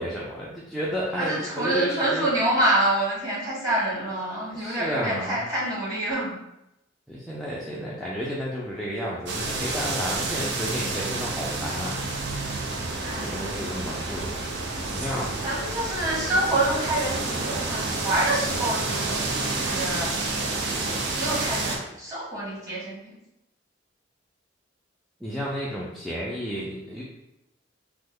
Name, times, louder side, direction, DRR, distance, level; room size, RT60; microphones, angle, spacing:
voice 1, 0.0-2.3 4.5-5.4 7.1-12.0 13.1-14.4 14.9-15.3 25.2-27.0, equal, ahead, -6 dB, 0.4 m, -32 dB
voice 2, 1.1-6.3 13.0-13.4 13.8-14.0 15.4-19.4 19.7-20.1 20.8-20.9 21.2-23.1, right 1 dB, 20° right, -8 dB, 1.2 m, -27 dB
sound 1, 9.3-21.8, right 3 dB, 60° right, 0.5 m, -29 dB
3.1 x 2.0 x 3.5 m, 0.88 s
head